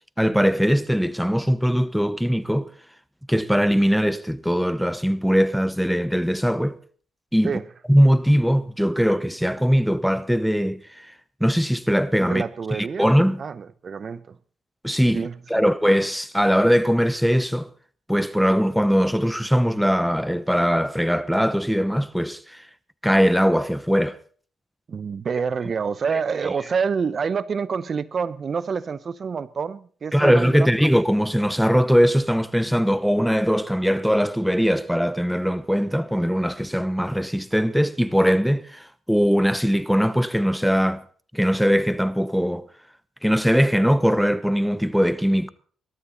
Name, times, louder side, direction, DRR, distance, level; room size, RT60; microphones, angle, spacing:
voice 1, 0.2-2.7 3.3-6.8 7.3-7.5 7.9-11.1 11.4-12.4 12.7-13.4 14.8-17.7 18.1-22.7 23.0-24.2 30.1-41.0 41.3-42.7 43.2-45.5, equal, ahead, 0.9 m, -20 dB
voice 2, 12.2-13.1 13.4-14.4 15.1-15.6 24.9-30.9, right 6 dB, 45° right, 0.8 m, -27 dB
21.5 x 12.5 x 4.1 m
cardioid pair, 90°, 0 cm